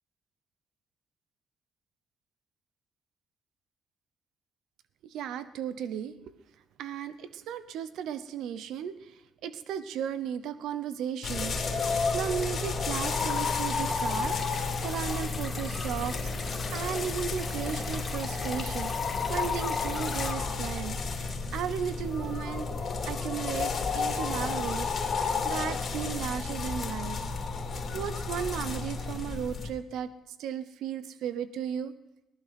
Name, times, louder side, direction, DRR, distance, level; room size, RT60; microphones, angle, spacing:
voice 1, 5.0-6.3 6.8-27.2 27.9-31.9, right 8 dB, 85° right, 13 dB, 0.8 m, -35 dB
sound 1, 11.2-29.7, left 4 dB, 50° left, 2.6 m, -32 dB
sound 2, 13.0-20.3, left 3 dB, 30° left, 2.7 m, -40 dB
19.0 x 12.0 x 5.8 m, 0.91 s
cardioid pair, 90°, 0 cm